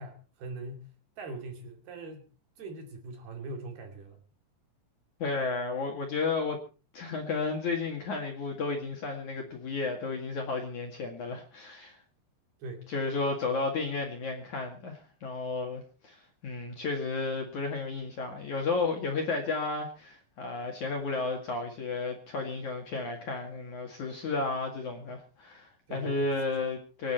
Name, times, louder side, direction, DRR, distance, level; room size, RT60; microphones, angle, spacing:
voice 1, 0.0-2.3 2.6-4.2 12.6-12.9 25.9-26.6, right 2 dB, 55° right, 4 dB, 4.2 m, -42 dB
voice 2, 5.2-6.6 6.9-12.0 12.9-16.2 16.4-27.1, left 3 dB, 50° left, 2 dB, 2.7 m, -33 dB
25.5 x 9.8 x 4.4 m, 0.35 s
omnidirectional pair, 5.6 m